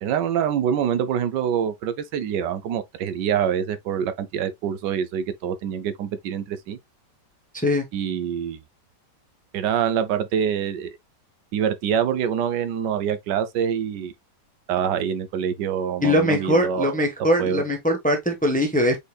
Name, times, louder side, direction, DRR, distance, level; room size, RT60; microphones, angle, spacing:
voice 1, 0.0-6.8 7.9-8.6 9.5-10.9 11.5-14.1 14.7-16.9 17.4-17.6, right 8 dB, 85° right, 1.3 m, -25 dB
voice 2, 7.5-7.8 16.0-19.0, left 1 dB, 5° left, 0.8 m, -21 dB
5.2 x 4.3 x 2.2 m
omnidirectional pair, 1.8 m